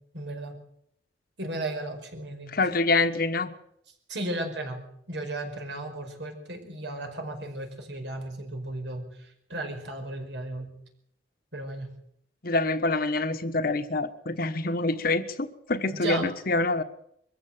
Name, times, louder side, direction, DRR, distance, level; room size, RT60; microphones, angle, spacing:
voice 1, 0.1-0.5 1.4-2.5 4.1-10.7 11.5-11.9 15.9-16.3, right 2 dB, 75° right, 4 dB, 5.1 m, -35 dB
voice 2, 2.5-3.5 12.4-16.8, left 3 dB, 55° left, 9 dB, 1.3 m, -26 dB
23.0 x 14.5 x 7.9 m, 0.73 s
head